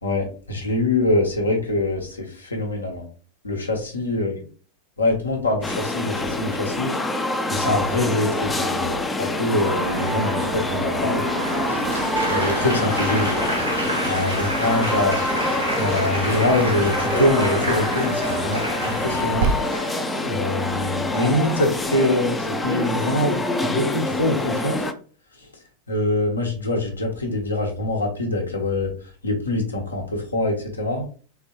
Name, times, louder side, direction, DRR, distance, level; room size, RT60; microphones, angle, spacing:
voice 1, 0.0-3.0 3.4-4.4 5.0-6.9 7.5-11.2 12.3-13.5 14.1-15.2 15.8-19.5 20.2-24.9 25.9-28.9 29.2-31.1, left 2 dB, 75° left, 1 dB, 1.1 m, -24 dB
sound 1, 5.6-24.9, left 2 dB, 10° left, 0.5 m, -26 dB
Car passing by / Traffic noise roadway noise, 9.6-19.5, right 6 dB, 45° right, 0.4 m, -32 dB
Applause, 11.4-20.3 21.1-21.5, right 1 dB, 90° right, 1.6 m, -29 dB
4.1 x 3.5 x 2.9 m, 0.39 s
figure-of-eight pair, 90°, 0 cm